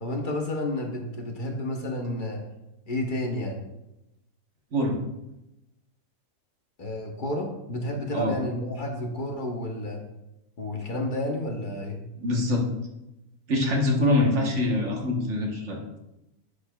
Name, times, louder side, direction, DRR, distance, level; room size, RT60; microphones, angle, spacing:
voice 1, 0.0-2.4 2.9-3.6 6.8-10.0 10.6-12.0, left 1 dB, 40° left, 1 dB, 0.8 m, -30 dB
voice 2, 12.2-12.6 13.5-16.0, left 2 dB, 50° right, 0 dB, 1.4 m, -24 dB
7.5 x 6.5 x 2.3 m, 0.91 s
omnidirectional pair, 1.7 m